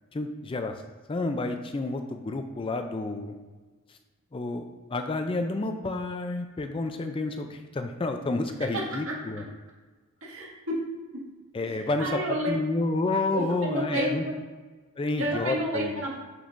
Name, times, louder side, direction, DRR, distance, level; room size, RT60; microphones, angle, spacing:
voice 1, 0.1-0.8 1.1-3.3 4.3-9.4 11.5-14.2 15.0-16.0, left 2 dB, 25° left, 6 dB, 0.4 m, -30 dB
voice 2, 10.2-10.8 11.1-11.2 12.0-12.5 13.3-14.1 15.2-16.2, right 1 dB, 75° right, -3 dB, 1.9 m, -30 dB
6.2 x 6.1 x 2.5 m, 1.3 s
head